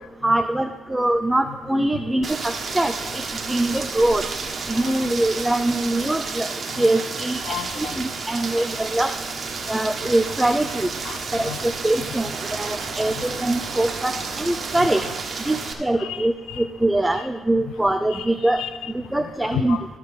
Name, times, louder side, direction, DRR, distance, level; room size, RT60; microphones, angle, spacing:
voice 1, 0.2-2.9 3.5-4.2 4.7-6.5 6.8-7.4 7.8-9.1 9.7-10.9 11.3-15.0 15.5-18.6 19.1-19.8, right 1 dB, 10° right, 7 dB, 0.5 m, -23 dB
Rain, 2.2-15.7, right 4 dB, 45° right, 1.4 m, -31 dB
voice 2, 7.4-8.0 8.3-8.5 10.7-11.7 13.0-13.3 14.8-15.2 15.5-15.6 15.9-16.7 17.1-17.2 18.1-19.9, left 9 dB, 85° left, 11 dB, 0.6 m, -34 dB
sound 1, 8.6-15.2, right 8 dB, 80° right, 0.5 m, -41 dB
13.0 x 4.4 x 6.7 m, 1.2 s
cardioid pair, 90°, 0 cm